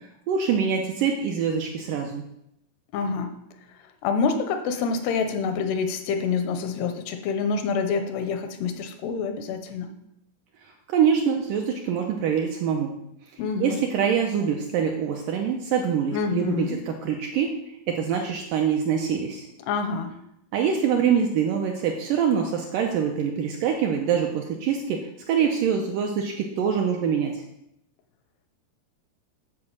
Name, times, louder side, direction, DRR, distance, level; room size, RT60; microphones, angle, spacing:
voice 1, 0.3-2.2 10.9-12.9 13.6-17.5 17.9-19.5 20.5-27.4, right 7 dB, 80° right, 2 dB, 2.0 m, -24 dB
voice 2, 2.9-3.4 4.0-9.9 13.4-13.8 16.1-16.8 19.7-20.1, left 5 dB, 85° left, 7 dB, 2.9 m, -27 dB
9.9 x 4.8 x 7.3 m, 0.80 s
omnidirectional pair, 4.6 m